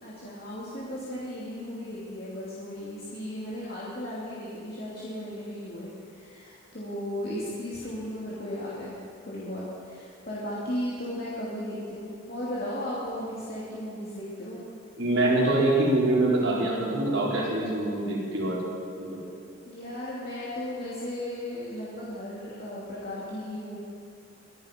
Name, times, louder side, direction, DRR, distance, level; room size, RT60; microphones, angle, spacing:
voice 1, 0.0-14.6 19.6-23.8, left 1 dB, 50° left, -8 dB, 2.9 m, -36 dB
voice 2, 15.0-18.6 19.0-19.2, right 2 dB, 80° right, -4 dB, 4.5 m, -24 dB
23.5 x 11.0 x 5.3 m, 2.5 s
head